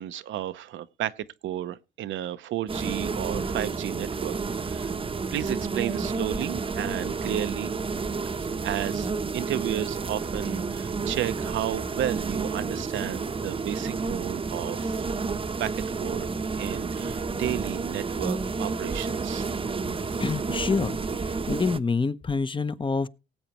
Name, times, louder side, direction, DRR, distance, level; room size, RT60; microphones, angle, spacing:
voice 1, 0.0-4.9 5.3-7.8 8.4-15.0 15.6-16.3 16.6-19.5 20.1-20.2, right 12 dB, 75° right, 0.8 m, -33 dB
sound 1, 2.7-21.8, right 4 dB, 25° right, 0.9 m, -30 dB
voice 2, 20.2-23.1, left 4 dB, 25° left, 0.9 m, -27 dB
19.0 x 8.1 x 3.0 m
cardioid pair, 90°, 20 cm